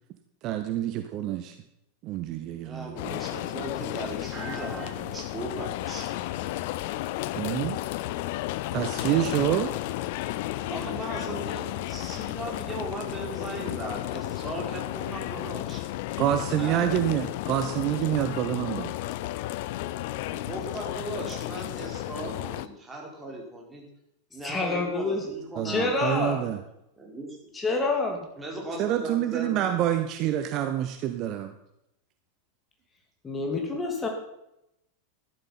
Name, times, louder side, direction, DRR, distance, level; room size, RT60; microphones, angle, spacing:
voice 1, 0.4-1.5 2.0-3.2 7.3-7.8 8.7-9.7 16.2-18.9 25.6-26.6 28.8-31.5, right 11 dB, 40° right, 8 dB, 1.0 m, -27 dB
voice 2, 2.6-6.1 10.7-15.8 16.4-16.8 20.2-23.9 24.3-25.9 27.0-27.4 28.4-29.9, right 1 dB, 10° right, -1 dB, 4.9 m, -37 dB
sound 1, 3.0-22.7, left 15 dB, 50° left, 0.6 m, -33 dB
voice 3, 24.4-25.2 25.6-26.5 27.5-28.2 33.2-34.1, left 3 dB, 15° left, 2 dB, 2.9 m, -27 dB
14.0 x 12.0 x 5.8 m, 0.82 s
figure-of-eight pair, 90°, 0 cm